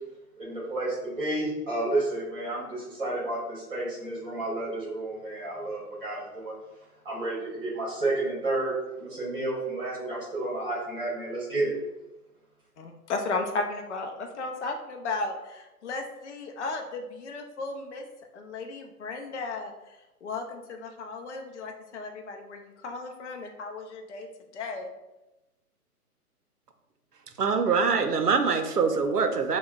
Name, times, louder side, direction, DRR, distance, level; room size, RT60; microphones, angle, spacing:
voice 1, 0.4-6.5 7.0-11.7, right 2 dB, 35° right, -6 dB, 1.2 m, -31 dB
voice 2, 12.8-18.1 18.3-24.3 24.5-24.9, left 3 dB, 50° left, 3 dB, 0.5 m, -35 dB
voice 3, 27.4-29.6, right 5 dB, 85° right, 7 dB, 0.6 m, -24 dB
5.9 x 2.2 x 2.3 m, 0.99 s
figure-of-eight pair, 130°, 46 cm